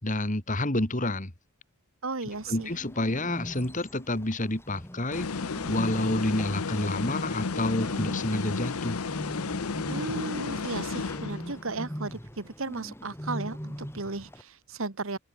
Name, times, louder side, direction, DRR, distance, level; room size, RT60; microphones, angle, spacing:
voice 1, 0.0-1.3 2.5-5.3 5.7-9.0, left 1 dB, 35° left, 2.7 m, -29 dB
voice 2, 2.0-2.7 9.9-15.2, right 3 dB, 65° right, 1.5 m, -35 dB
Bird, 2.3-14.4, equal, 10° left, 6.7 m, -41 dB
sound 1, 5.1-11.7, left 4 dB, 90° left, 0.8 m, -33 dB
open air
head